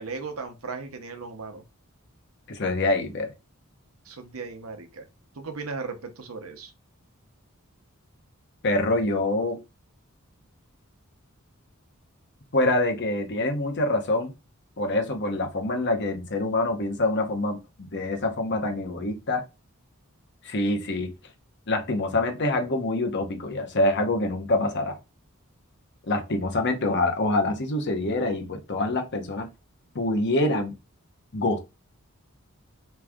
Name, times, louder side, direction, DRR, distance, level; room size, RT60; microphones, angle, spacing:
voice 1, 0.0-1.6 4.0-5.0 5.3-6.7, right 4 dB, 70° right, 0.9 m, -36 dB
voice 2, 2.5-3.3 8.6-9.6 12.5-14.3 14.8-19.4 20.4-21.1 21.7-25.0 26.1-29.5 29.9-30.8 31.3-31.6, left 2 dB, 55° left, 0.9 m, -25 dB
3.7 x 3.2 x 3.5 m
head